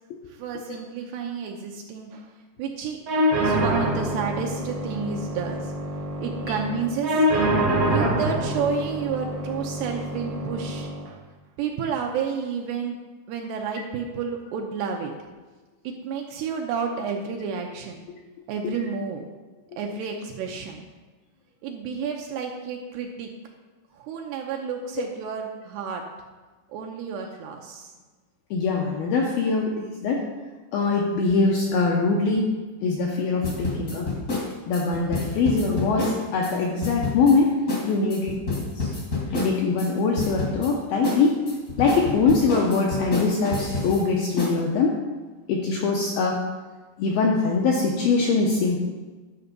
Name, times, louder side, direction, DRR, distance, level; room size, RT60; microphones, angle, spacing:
voice 1, 0.3-2.3 2.6-3.0 3.4-5.7 6.2-7.2 7.9-11.3 11.6-13.0 13.3-15.1 15.8-18.0 18.5-19.3 19.8-20.9 21.6-23.3 23.9-26.0 26.7-27.9, right 6 dB, 80° right, 2 dB, 2.6 m, -31 dB
sound 1, 3.1-11.1, right 1 dB, 60° right, 1.5 m, -25 dB
voice 2, 28.5-30.2 30.7-32.5 32.8-34.2 34.7-37.5 37.9-38.9 39.3-41.4 41.8-44.9 45.5-46.4 47.0-48.8, left 4 dB, 75° left, -1 dB, 2.2 m, -23 dB
sound 2, 33.4-36.5 36.8-37.4 37.7-37.8 38.1-39.9 40.2-40.7 41.0-44.0 44.4-44.6, left 3 dB, 45° left, 1.2 m, -28 dB
11.0 x 6.8 x 5.2 m, 1.3 s
omnidirectional pair, 5.3 m